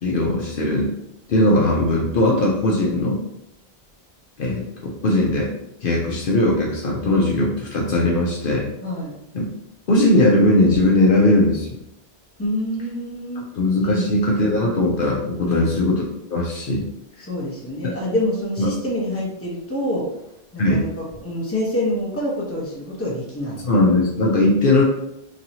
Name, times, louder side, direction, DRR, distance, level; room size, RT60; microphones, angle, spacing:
voice 1, 0.0-0.9 1.3-3.2 4.4-5.5 5.8-8.7 9.3-9.5 9.9-11.7 13.6-16.0 16.3-16.8 18.6-18.7 20.6-20.8 23.6-24.8, left 1 dB, 60° left, -2 dB, 0.8 m, -19 dB
voice 2, 8.8-9.1 12.4-13.4 13.8-14.1 15.4-15.7 17.2-20.1 20.5-23.6, left 1 dB, 15° left, -4 dB, 0.8 m, -26 dB
3.1 x 2.8 x 2.7 m, 0.83 s
omnidirectional pair, 1.1 m